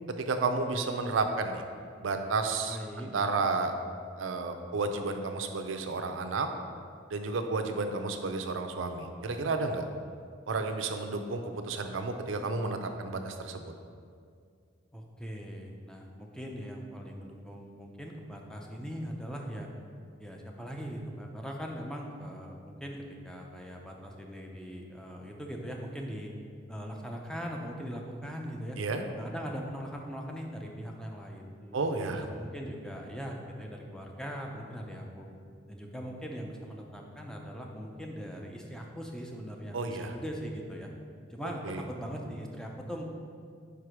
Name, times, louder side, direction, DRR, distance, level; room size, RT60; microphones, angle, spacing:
voice 1, 0.2-1.6 2.0-3.7 4.2-6.5 7.1-9.8 10.5-13.7 28.8-29.0 31.7-32.2 39.7-40.1 41.6-41.8, right 3 dB, 85° right, 6 dB, 0.5 m, -32 dB
voice 2, 2.7-3.1 14.9-19.7 20.2-26.3 26.7-28.8 29.2-35.3 35.7-40.9 41.3-43.0, equal, 5° left, 0 dB, 0.5 m, -40 dB
5.1 x 4.7 x 4.9 m, 2.2 s
head